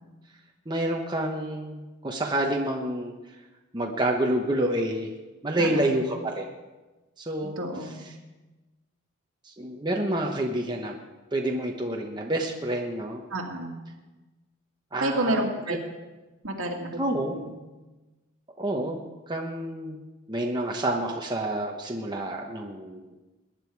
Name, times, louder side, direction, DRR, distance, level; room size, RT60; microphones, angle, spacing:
voice 1, 0.7-3.1 3.7-5.1 5.4-6.5 7.2-7.6 9.4-11.0 11.3-13.2 14.9-15.8 17.0-17.3 18.6-19.0 19.3-20.0 20.3-23.1, right 1 dB, 20° right, 0 dB, 1.1 m, -28 dB
voice 2, 5.6-6.0 7.6-8.1 13.3-13.8 15.0-15.8 16.4-16.9 17.4-17.6, right 1 dB, 65° right, 1 dB, 2.3 m, -29 dB
21.5 x 10.0 x 4.7 m, 1.2 s
head